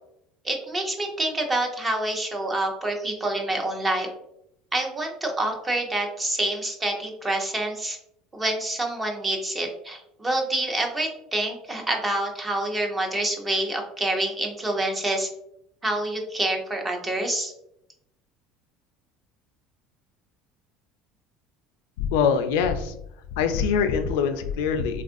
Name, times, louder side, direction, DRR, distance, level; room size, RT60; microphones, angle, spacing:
voice 1, 0.4-4.1 4.7-8.0 8.3-15.3 15.8-17.5, right 1 dB, 20° right, 2 dB, 0.6 m, -27 dB
voice 2, 22.0-22.9 23.3-25.0, left 6 dB, 85° left, 7 dB, 0.3 m, -23 dB
3.5 x 2.4 x 2.5 m, 0.79 s
supercardioid pair, 115°, 0 cm